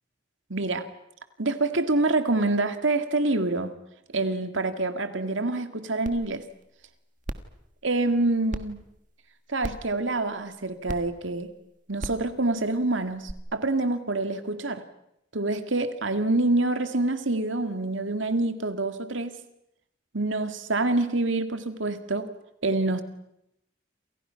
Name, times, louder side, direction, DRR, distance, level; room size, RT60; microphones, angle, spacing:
voice 1, 0.5-0.9 1.4-3.7 4.1-6.4 7.8-8.8 9.5-11.5 11.9-14.8 15.3-19.3 20.1-22.3 22.6-23.0, right 2 dB, 75° right, 8 dB, 2.2 m, -26 dB
sound 1, 6.1-6.2 6.6-6.7 7.2-7.5 8.5-8.6 9.6-9.9 10.9-11.0 12.0-12.2 13.3-13.4, right 1 dB, 40° right, 1.6 m, -33 dB
28.5 x 28.5 x 5.9 m, 0.80 s
head